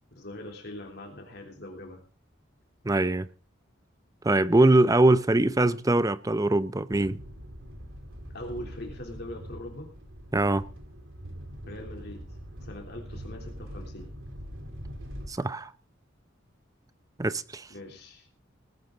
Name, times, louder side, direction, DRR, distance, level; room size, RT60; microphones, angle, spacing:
voice 1, 0.1-2.0 8.3-9.9 11.6-12.2 12.6-14.1 17.7-18.3, left 1 dB, 55° left, 3.3 m, -41 dB
voice 2, 2.8-3.3 4.2-7.2 10.3-10.6 15.3-15.7 17.2-17.7, right 2 dB, 20° right, 0.6 m, -22 dB
sound 1, 6.9-15.3, equal, 80° right, 3.7 m, -42 dB
19.0 x 11.5 x 3.9 m
head